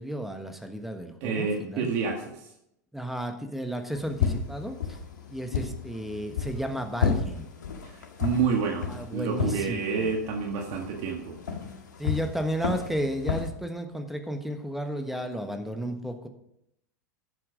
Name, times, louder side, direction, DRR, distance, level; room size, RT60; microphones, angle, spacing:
voice 1, 0.0-1.9 2.9-5.0 5.3-7.5 8.9-10.1 12.0-16.3, equal, ahead, 6 dB, 1.3 m, -33 dB
voice 2, 1.2-2.5 7.8-11.4, right 5 dB, 55° right, 2 dB, 1.7 m, -29 dB
sound 1, 3.9-13.5, left 6 dB, 85° left, 1.8 m, -32 dB
11.5 x 7.6 x 5.0 m, 0.79 s
hypercardioid pair, 105°, 9 cm